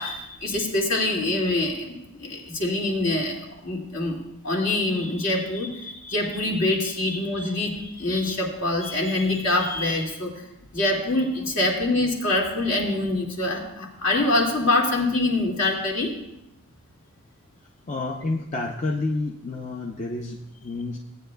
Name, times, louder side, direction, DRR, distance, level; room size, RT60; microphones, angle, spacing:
voice 1, 0.0-4.2 4.4-10.3 10.7-16.1, left 2 dB, 60° left, -1 dB, 2.1 m, -25 dB
voice 2, 17.9-21.0, left 2 dB, 35° left, 1 dB, 0.5 m, -29 dB
17.5 x 9.5 x 2.2 m, 0.87 s
head